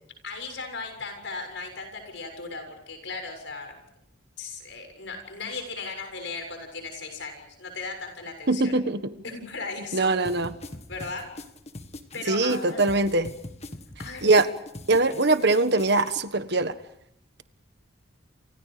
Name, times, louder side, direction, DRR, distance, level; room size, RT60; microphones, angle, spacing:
voice 1, 0.2-3.8 4.4-8.8 9.2-10.1 10.9-11.3 12.1-12.9 14.0-14.3, left 4 dB, 65° left, 5 dB, 7.2 m, -37 dB
voice 2, 8.5-9.0 9.9-10.5 12.3-13.3 14.2-14.5 14.9-16.7, right 2 dB, 55° right, 11 dB, 1.5 m, -22 dB
sound 1, 10.2-16.2, left 2 dB, 35° left, 1.8 m, -42 dB
29.0 x 28.5 x 5.1 m, 0.78 s
head